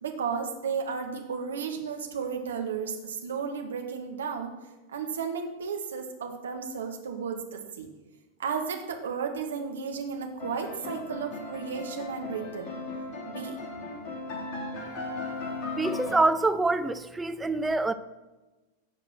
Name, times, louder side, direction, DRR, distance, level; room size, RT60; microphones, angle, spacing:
voice 1, 0.0-4.5 4.9-7.9 8.4-12.7 13.3-13.6, right 6 dB, 65° right, 1.8 m, -33 dB
sound 1, 10.4-16.2, left 3 dB, 40° left, 2.7 m, -37 dB
voice 2, 15.8-17.9, right 2 dB, 10° right, 0.7 m, -25 dB
16.5 x 6.0 x 6.3 m
figure-of-eight pair, 90°, 0 cm